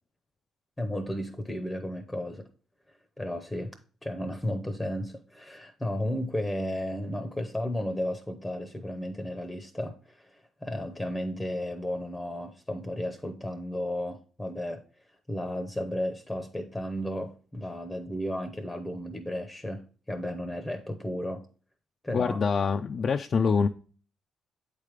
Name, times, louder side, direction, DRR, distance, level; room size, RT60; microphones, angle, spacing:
voice 1, 0.8-2.5 2.9-3.7 4.0-14.8 15.3-21.5 22.0-22.4, left 1 dB, 10° left, 0.7 m, -34 dB
voice 2, 22.1-23.7, left 5 dB, 50° left, 0.4 m, -25 dB
8.3 x 3.3 x 5.0 m
cardioid pair, 90°, 0 cm